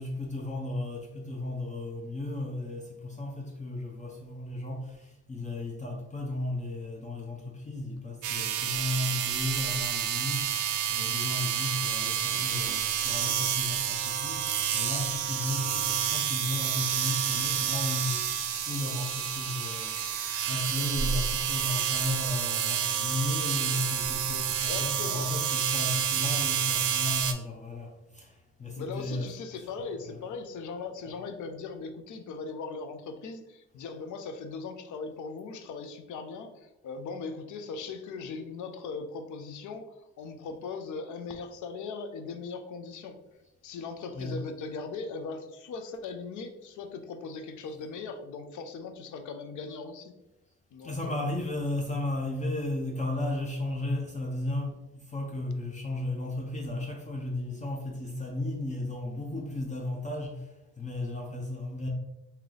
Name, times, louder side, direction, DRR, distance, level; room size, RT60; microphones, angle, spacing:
voice 1, 0.0-29.3 30.1-30.2 31.0-31.2 44.1-44.4 50.8-61.9, left 2 dB, 25° left, 0.6 m, -34 dB
sound 1, 8.2-27.3, right 9 dB, 80° right, 0.5 m, -29 dB
sound 2, 18.0-30.3 30.6-31.0 31.6-31.7, right 1 dB, ahead, 0.8 m, -51 dB
voice 2, 24.3-25.3 28.8-43.2 43.6-50.1 50.7-51.2, left 4 dB, 75° left, 0.6 m, -39 dB
3.1 x 2.9 x 3.8 m
cardioid pair, 90°, 30 cm